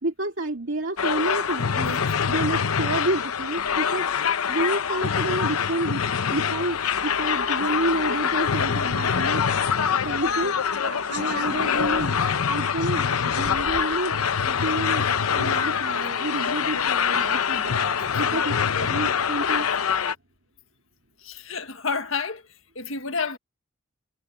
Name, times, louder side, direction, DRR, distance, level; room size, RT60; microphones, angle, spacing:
voice 1, 0.0-2.0 2.3-4.1 4.5-6.0 6.3-9.4 10.0-10.5 10.8-12.2 12.5-14.1 14.5-17.8 18.1-19.7, right 2 dB, 60° right, 2.7 m, -29 dB
sound 1, 1.0-20.1, left 7 dB, 90° left, 0.8 m, -24 dB
voice 2, 21.2-22.4 22.7-23.4, left 5 dB, 70° left, 1.7 m, -29 dB
head